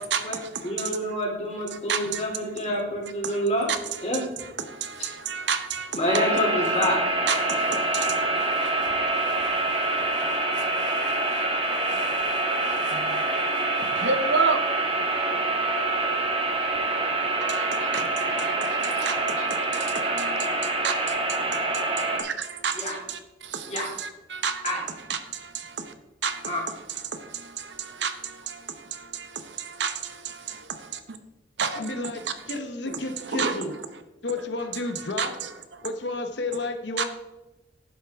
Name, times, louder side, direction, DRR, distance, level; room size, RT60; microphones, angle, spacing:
voice 1, 0.0-1.2 1.6-2.8 3.2-6.2 6.6-6.9 7.3-16.8 17.4-25.9 26.2-31.2 31.6-32.6 32.9-34.0 34.4-35.9 37.0-37.1, right 6 dB, 85° right, 0.9 m, -33 dB
voice 2, 0.6-3.7 4.0-4.2 6.0-7.0 22.8-22.9 23.7-23.9 24.6-24.8 26.5-26.6, equal, 35° left, 2.9 m, -27 dB
sound 1, 6.1-22.2, right 2 dB, 30° right, 1.5 m, -26 dB
voice 3, 31.7-32.2 32.5-33.7 34.2-35.3 35.8-37.1, left 2 dB, 80° left, 0.9 m, -31 dB
10.5 x 8.1 x 3.5 m
head